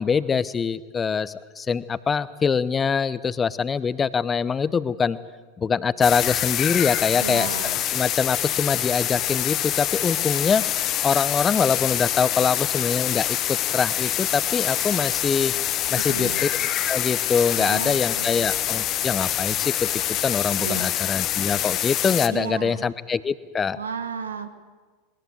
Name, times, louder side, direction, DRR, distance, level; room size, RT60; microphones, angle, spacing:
voice 1, 0.0-5.2 5.6-7.6 7.9-10.6 11.0-15.5 15.9-16.5 16.8-19.9 20.2-23.8, left 6 dB, 20° left, 17 dB, 0.8 m, -24 dB
sound 1, 6.0-22.3, left 12 dB, 40° left, 1.2 m, -25 dB
voice 2, 7.2-7.8 16.1-16.4 17.6-18.5 20.6-20.9 22.3-22.8 23.7-24.5, right 6 dB, 80° right, 9 dB, 1.3 m, -33 dB
20.5 x 19.5 x 7.9 m, 1.4 s
figure-of-eight pair, 85°, 0 cm